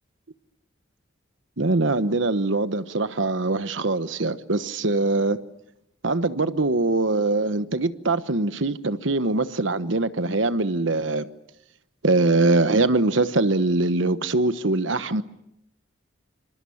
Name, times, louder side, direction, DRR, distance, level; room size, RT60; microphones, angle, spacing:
voice 1, 1.6-5.4 6.0-11.3 12.0-15.2, right 2 dB, 75° right, 1.2 m, -22 dB
28.0 x 26.0 x 7.2 m
head